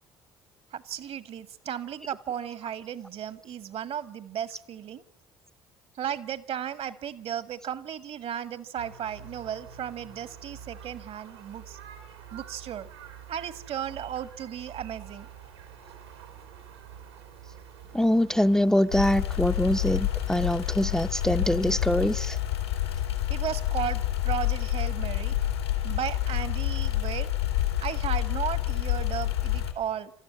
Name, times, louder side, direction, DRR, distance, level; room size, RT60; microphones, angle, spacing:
voice 1, 0.7-5.0 5.9-11.8 12.3-12.9 13.3-15.3 23.3-25.3 25.8-27.3 27.8-30.1, right 9 dB, 50° right, 1.6 m, -35 dB
sound 1, 8.8-21.6, right 8 dB, 85° right, 3.5 m, -47 dB
voice 2, 17.9-22.4, left 1 dB, 5° left, 0.8 m, -24 dB
sound 2, 18.9-29.7, left 13 dB, 85° left, 2.6 m, -28 dB
29.0 x 13.0 x 9.7 m
figure-of-eight pair, 55°, 13 cm